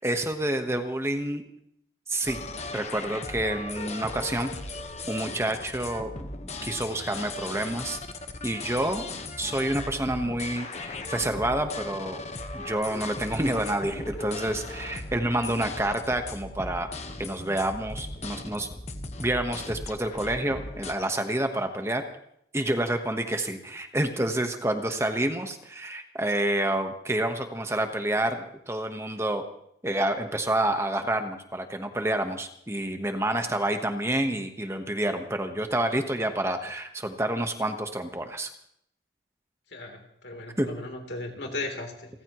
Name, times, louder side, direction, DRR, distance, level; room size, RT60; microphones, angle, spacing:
voice 1, 0.0-1.4 2.1-2.4 2.7-4.5 5.1-8.0 8.4-9.0 9.4-12.2 12.5-16.9 17.2-18.7 19.2-22.0 22.5-29.4 29.8-38.5 40.6-40.7, right 1 dB, 15° right, 6 dB, 1.2 m, -28 dB
sound 1, 2.3-20.9, left 2 dB, 35° left, 1.2 m, -38 dB
voice 2, 39.7-42.1, left 2 dB, 70° left, 2 dB, 3.4 m, -36 dB
30.0 x 14.5 x 3.1 m, 0.70 s
head